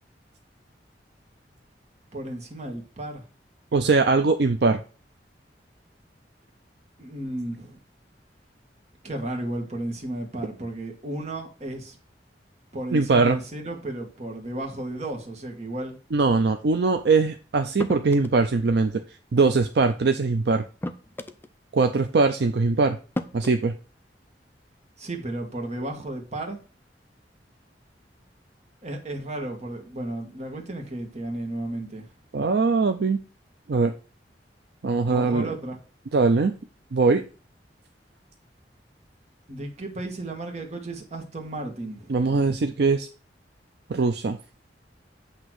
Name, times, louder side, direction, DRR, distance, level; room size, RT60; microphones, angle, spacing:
voice 1, 2.1-3.2 7.0-7.8 9.0-12.0 12.7-16.0 25.0-26.6 28.8-32.1 35.1-35.8 39.5-42.4, right 1 dB, 40° right, 1.4 m, -34 dB
voice 2, 3.7-4.8 12.9-13.4 16.1-19.0 19.3-20.6 21.7-23.0 23.3-23.7 32.3-33.2 33.7-33.9 34.8-35.5 36.1-36.5 36.9-37.2 42.1-43.1 43.9-44.4, right 4 dB, 65° right, 0.5 m, -21 dB
sound 1, 17.8-18.4 19.9-20.0 20.8-21.5 22.5-22.6 23.2-23.6, left 1 dB, 10° left, 0.4 m, -33 dB
8.1 x 2.9 x 6.0 m
head